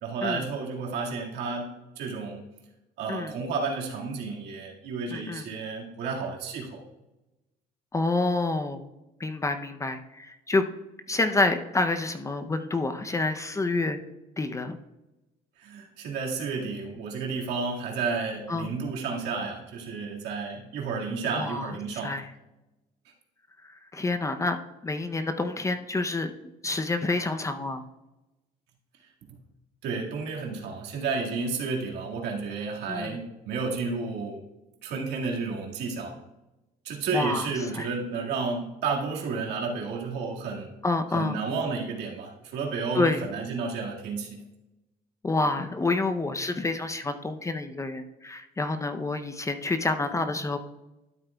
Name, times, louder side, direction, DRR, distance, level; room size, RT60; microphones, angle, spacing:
voice 1, 0.0-2.5 3.0-6.8 15.6-22.2 29.8-34.4 34.8-36.2 36.9-40.8 41.1-44.4, right 4 dB, 80° right, -1 dB, 2.0 m, -31 dB
voice 2, 5.1-5.5 7.9-8.9 9.2-10.6 11.1-14.0 14.4-14.8 18.5-18.7 21.3-22.3 23.6-26.3 26.6-27.9 32.9-33.2 37.1-37.9 40.8-41.4 42.9-43.3 45.2-50.6, left 3 dB, 20° left, 8 dB, 0.6 m, -28 dB
12.5 x 8.0 x 2.3 m, 0.99 s
cardioid pair, 110°, 17 cm